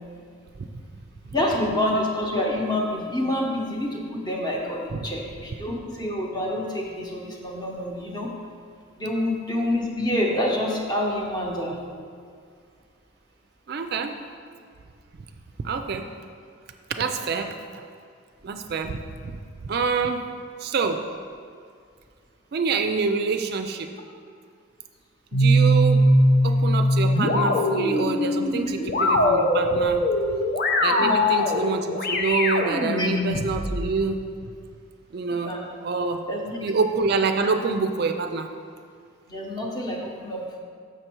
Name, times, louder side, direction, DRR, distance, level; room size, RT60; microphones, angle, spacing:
voice 1, 1.3-8.3 9.0-11.8 31.0-31.5 33.0-33.1 35.4-35.7 36.3-36.6 39.3-40.6, left 1 dB, 20° left, -1 dB, 0.9 m, -27 dB
voice 2, 13.7-14.2 15.6-16.1 17.0-17.9 18.4-19.0 19.6-20.3 20.6-21.1 22.5-23.9 25.3-26.1 26.4-30.1 30.8-34.3 35.1-35.5 35.8-36.2 36.6-38.5, right 4 dB, 50° right, 6 dB, 0.4 m, -26 dB
sound 1, 25.3-33.9, equal, 50° left, 0.6 m, -21 dB
6.6 x 6.1 x 4.5 m, 2.2 s
head